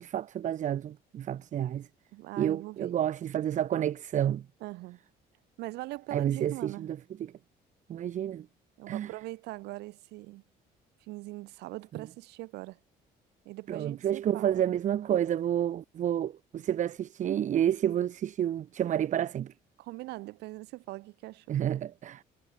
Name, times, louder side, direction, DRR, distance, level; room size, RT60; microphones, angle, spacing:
voice 1, 0.0-1.9 2.4-4.4 6.1-7.0 7.9-8.5 8.9-9.1 13.7-19.5 21.5-22.2, right 10 dB, 45° right, 0.7 m, -29 dB
voice 2, 2.1-2.9 4.6-5.0 5.6-6.9 8.8-10.4 11.0-12.8 13.4-14.6 19.8-21.6, right 20 dB, 85° right, 1.0 m, -41 dB
cardioid pair, 110°, 17 cm